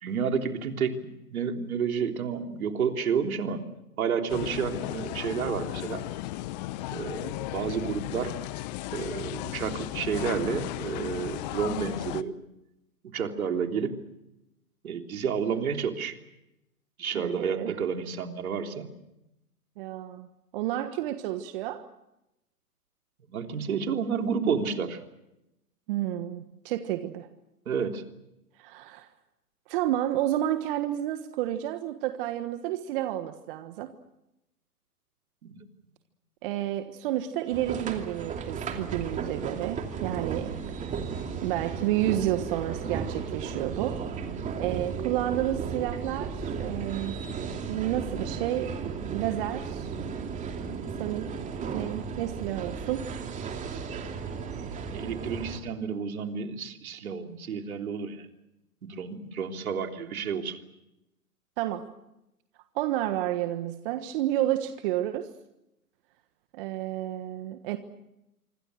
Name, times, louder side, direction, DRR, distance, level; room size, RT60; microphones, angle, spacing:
voice 1, 0.0-3.7 4.0-6.0 6.9-8.4 8.9-12.3 13.0-14.0 14.8-16.2 17.0-18.9 23.3-25.0 27.6-28.0 35.4-35.6 40.5-40.7 54.6-58.3 58.8-60.6, right 6 dB, 65° right, 4 dB, 3.5 m, -30 dB
sound 1, 4.3-12.2, left 15 dB, 30° left, 0.8 m, -35 dB
voice 2, 17.1-17.7 19.8-20.3 20.5-21.8 25.9-27.3 28.6-29.1 29.7-33.9 36.4-40.6 41.4-44.0 44.6-47.2 47.7-50.0 51.0-51.3 51.7-53.1 61.6-61.9 62.7-65.3 66.5-67.8, right 13 dB, 35° right, 9 dB, 1.4 m, -30 dB
sound 2, 37.5-55.6, right 6 dB, 15° right, 2.7 m, -35 dB
26.0 x 25.5 x 6.5 m, 0.89 s
hypercardioid pair, 130°, 46 cm